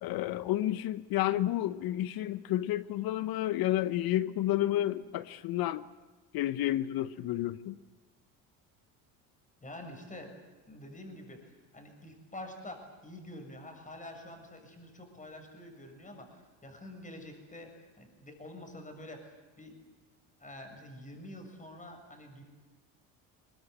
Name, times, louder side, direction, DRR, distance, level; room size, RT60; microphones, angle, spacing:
voice 1, 0.0-5.8 6.3-7.8, left 14 dB, 65° left, 1.0 m, -30 dB
voice 2, 9.6-10.4 10.7-19.8 20.4-22.4, left 1 dB, 20° left, 7.2 m, -47 dB
23.0 x 20.5 x 9.9 m
supercardioid pair, 90°, 39 cm